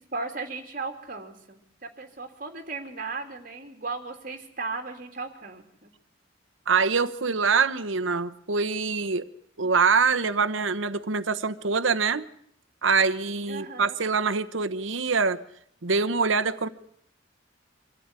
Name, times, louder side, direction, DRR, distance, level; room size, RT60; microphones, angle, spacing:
voice 1, 0.0-5.9 13.5-13.9, right 3 dB, 45° right, 4 dB, 3.3 m, -36 dB
voice 2, 6.7-9.2 9.6-12.3 12.8-15.4 15.8-16.7, right 5 dB, 80° right, 10 dB, 1.1 m, -24 dB
25.5 x 14.0 x 9.8 m, 0.69 s
head